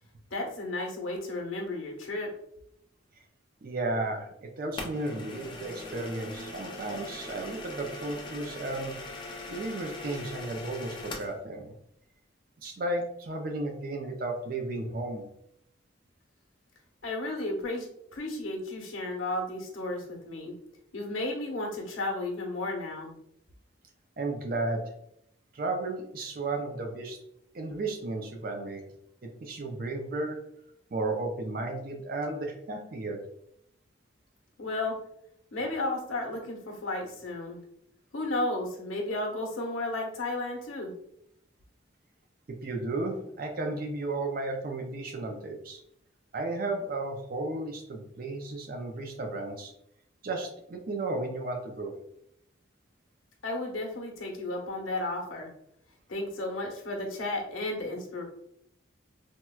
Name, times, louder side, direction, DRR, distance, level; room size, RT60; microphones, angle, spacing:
voice 1, 0.3-2.3 17.0-17.9 18.1-20.5 20.9-23.1 34.6-34.9 35.5-37.6 38.1-40.9 53.4-55.5 56.1-58.2, left 2 dB, 90° left, 0 dB, 0.9 m, -33 dB
voice 2, 3.6-9.0 9.5-11.7 12.6-15.2 24.2-24.9 25.5-27.2 27.5-28.8 29.2-30.4 30.9-33.2 42.6-45.8 46.3-49.7 50.2-51.9, right 2 dB, 45° right, 3 dB, 0.4 m, -34 dB
sound 1, 4.8-11.4, left 2 dB, 25° left, 0.5 m, -41 dB
4.3 x 2.1 x 2.3 m, 0.74 s
head